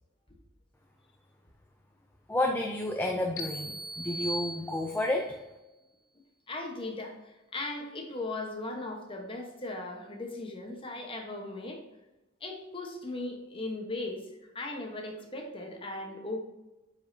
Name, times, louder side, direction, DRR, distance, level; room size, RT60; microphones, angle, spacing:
voice 1, 2.3-5.4, left 1 dB, 10° left, 2 dB, 0.5 m, -30 dB
sound 1, 3.4-5.2, equal, 75° left, 1.4 m, -38 dB
voice 2, 6.5-11.8 12.4-14.3 14.5-16.4, left 2 dB, 25° left, 2 dB, 1.2 m, -38 dB
8.4 x 5.2 x 2.8 m, 1.0 s
head